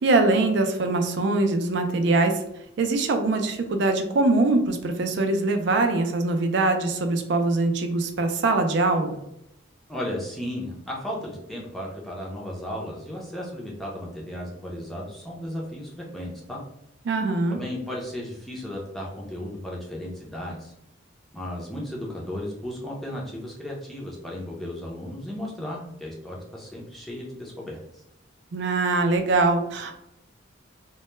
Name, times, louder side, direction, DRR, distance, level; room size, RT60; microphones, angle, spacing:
voice 1, 0.0-2.4 2.8-9.2 17.1-17.6 28.5-29.9, right 2 dB, 60° right, 6 dB, 0.4 m, -22 dB
voice 2, 9.9-16.6 17.5-20.7 21.3-28.0, left 1 dB, ahead, -4 dB, 0.5 m, -35 dB
2.1 x 2.0 x 3.0 m, 0.82 s
head